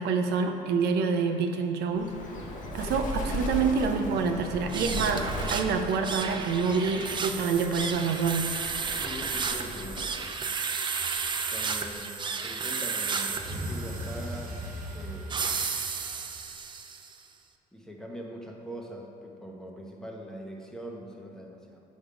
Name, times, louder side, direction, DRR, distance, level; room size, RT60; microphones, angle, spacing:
voice 1, 0.0-2.1 2.7-8.5, right 5 dB, 75° right, 5 dB, 0.6 m, -27 dB
Bird, 1.9-10.2, equal, 50° left, 1.0 m, -37 dB
sound 1, 4.7-17.1, right 5 dB, 30° right, 0.4 m, -33 dB
voice 2, 9.0-10.3 11.5-14.6 14.9-15.6 17.7-21.8, equal, 5° left, 0 dB, 0.8 m, -42 dB
sound 2, 13.3-16.5, right 1 dB, 55° right, 1.2 m, -38 dB
6.1 x 5.2 x 5.0 m, 2.5 s
cardioid pair, 110°, 17 cm